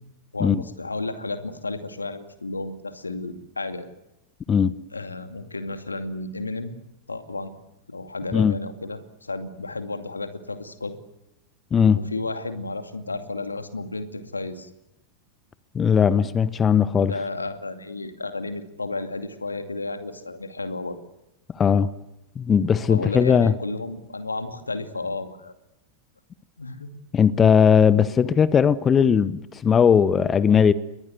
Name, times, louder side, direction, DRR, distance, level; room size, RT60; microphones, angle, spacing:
voice 1, 0.3-3.9 4.9-6.7 7.1-7.5 7.9-10.9 11.9-14.7 17.0-21.0 22.9-25.5 26.6-26.9, left 3 dB, 80° left, 2.4 m, -32 dB
voice 2, 15.7-17.1 21.5-21.9 22.4-23.5 27.1-30.7, left 7 dB, 20° left, 1.0 m, -18 dB
29.5 x 22.0 x 8.1 m
figure-of-eight pair, 90°, 0 cm